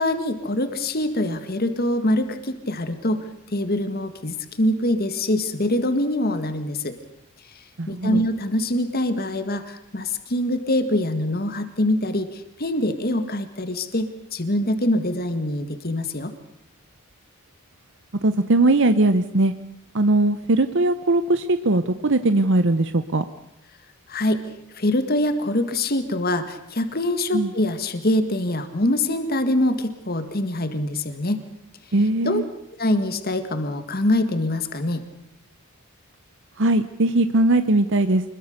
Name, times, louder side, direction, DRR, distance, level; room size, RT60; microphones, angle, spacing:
voice 1, 0.0-7.0 7.9-16.3 24.1-24.5 24.7-31.4 32.2-32.4 32.8-35.1, left 1 dB, 45° left, 9 dB, 1.8 m, -24 dB
voice 2, 7.8-8.2 18.2-19.5 19.9-23.2 27.3-27.5 31.9-32.4 36.6-38.2, right 2 dB, 55° right, 11 dB, 0.9 m, -20 dB
26.0 x 21.0 x 6.7 m, 0.78 s
head